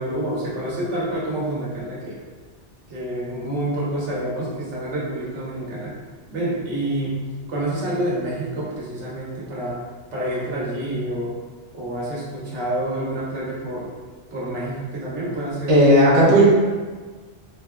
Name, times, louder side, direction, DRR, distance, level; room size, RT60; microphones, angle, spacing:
voice 1, 0.0-2.2 2.9-5.9 6.3-7.2 7.5-9.8 10.1-11.3 11.7-13.9 14.3-15.8, right 1 dB, 80° right, -5 dB, 1.0 m, -28 dB
voice 2, 15.7-16.5, right 1 dB, 40° right, -5 dB, 0.6 m, -13 dB
3.1 x 2.1 x 2.2 m, 1.4 s
omnidirectional pair, 1.2 m